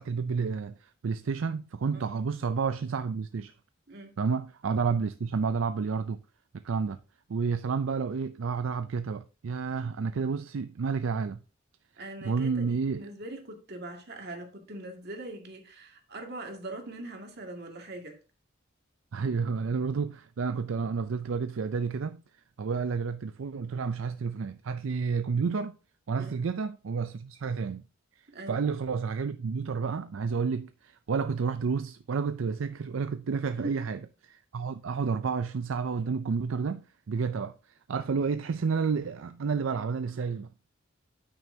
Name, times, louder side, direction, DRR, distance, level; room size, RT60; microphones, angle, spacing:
voice 1, 0.0-3.5 4.2-6.2 6.5-7.0 7.3-11.4 12.2-13.1 19.1-22.2 22.6-25.8 26.1-27.8 28.5-36.8 37.1-37.5 37.9-40.5, right 5 dB, 75° right, 0.4 m, -30 dB
voice 2, 12.0-18.2 26.1-26.3 28.3-28.6 33.6-33.9, right 2 dB, 55° right, 2.2 m, -41 dB
9.1 x 9.0 x 2.7 m
head